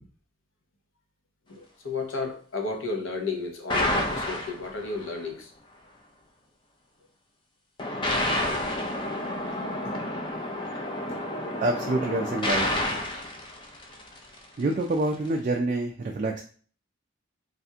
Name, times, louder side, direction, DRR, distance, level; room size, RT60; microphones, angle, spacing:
voice 1, 1.5-5.5 11.3-11.6, left 3 dB, 75° left, 3 dB, 0.7 m, -33 dB
sound 1, 3.7-5.1 7.8-14.3, left 1 dB, 25° left, 0.4 m, -29 dB
voice 2, 11.6-12.7 14.6-16.4, right 2 dB, 40° right, 0 dB, 0.3 m, -26 dB
3.3 x 2.5 x 2.7 m, 0.42 s
head